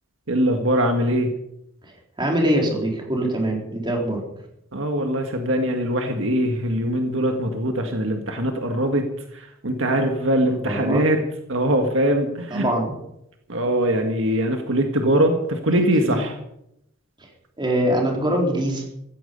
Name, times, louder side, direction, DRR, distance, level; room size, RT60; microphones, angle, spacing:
voice 1, 0.3-1.3 4.7-9.1 9.3-11.2 11.5-12.7 13.5-16.3, right 1 dB, 70° right, 4 dB, 1.8 m, -22 dB
voice 2, 1.9-4.2 10.5-11.0 12.5-12.9 16.0-16.2 17.6-18.9, right 1 dB, 25° right, 0 dB, 4.2 m, -23 dB
15.5 x 15.0 x 5.4 m, 0.80 s
head